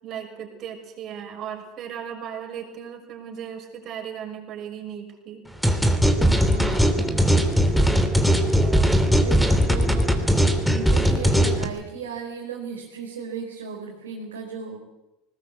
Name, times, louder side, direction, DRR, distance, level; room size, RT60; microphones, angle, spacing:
voice 1, 0.0-5.4 8.4-9.4, right 8 dB, 45° right, 2 dB, 6.3 m, -37 dB
sound 1, 5.6-11.6, equal, ahead, 3.0 m, -19 dB
voice 2, 6.5-7.1 8.7-14.8, right 6 dB, 80° right, -2 dB, 4.3 m, -36 dB
20.0 x 20.0 x 8.3 m, 0.95 s
hypercardioid pair, 80°, 0 cm